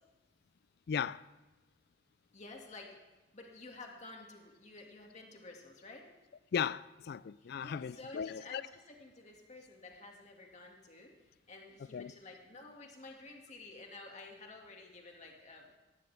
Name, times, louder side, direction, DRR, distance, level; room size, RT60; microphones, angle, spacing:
voice 1, 0.9-1.3 6.5-8.6 11.9-12.1, left 7 dB, 55° left, 0.3 m, -36 dB
voice 2, 2.3-2.9 3.3-6.1 7.4-11.1 11.5-15.7, left 3 dB, 40° left, 2.1 m, -51 dB
18.5 x 14.5 x 3.4 m
head